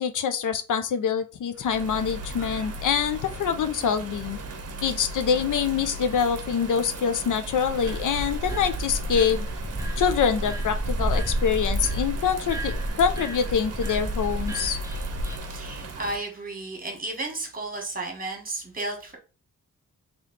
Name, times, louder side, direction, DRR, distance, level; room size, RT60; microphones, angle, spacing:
voice 1, 0.0-4.4 4.8-9.5 10.0-14.8, left 7 dB, 70° left, 10 dB, 0.5 m, -25 dB
Bird vocalization bird call bird song / Rain, 1.5-16.2, right 1 dB, 50° right, 0.8 m, -37 dB
sound 1, 7.6-15.4, right 1 dB, 10° right, 0.6 m, -30 dB
voice 2, 15.4-19.2, right 2 dB, 25° right, 2 dB, 1.5 m, -33 dB
3.2 x 3.1 x 4.0 m, 0.32 s
wide cardioid pair, 110°, 32 cm